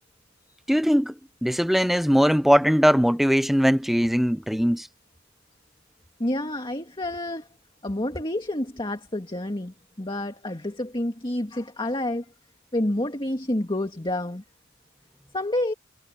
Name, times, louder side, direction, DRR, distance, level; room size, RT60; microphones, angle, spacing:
voice 1, 0.7-1.1 1.4-4.9, equal, ahead, 0.7 m, -20 dB
voice 2, 6.2-7.5 7.8-12.3 12.7-14.4 15.3-15.7, left 1 dB, 25° left, 2.0 m, -28 dB
head